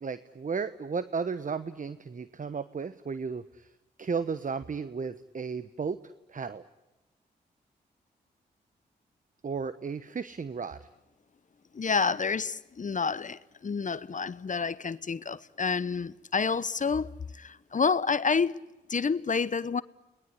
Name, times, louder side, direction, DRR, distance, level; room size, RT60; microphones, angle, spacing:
voice 1, 0.0-3.7 4.0-6.0 6.3-6.6 9.4-10.9, right 5 dB, 40° right, 1.1 m, -34 dB
voice 2, 11.7-18.6 18.9-19.8, left 5 dB, 40° left, 0.9 m, -29 dB
29.5 x 20.0 x 10.0 m
supercardioid pair, 40°, 20 cm